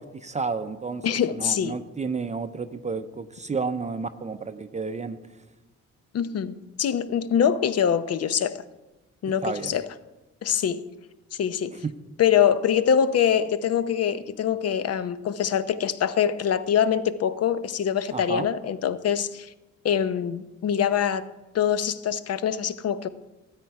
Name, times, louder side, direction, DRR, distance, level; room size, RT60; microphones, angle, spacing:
voice 1, 0.0-5.2 7.4-7.5 9.4-9.8 11.8-11.9 18.1-18.5, right 4 dB, 25° right, 9 dB, 0.6 m, -31 dB
voice 2, 1.0-1.8 6.1-8.6 9.2-9.8 10.4-10.9 11.4-11.8 12.2-19.5 19.8-21.3 21.5-23.1, left 8 dB, 55° left, 13 dB, 0.8 m, -24 dB
13.5 x 9.0 x 4.7 m, 1.1 s
cardioid pair, 90°, 30 cm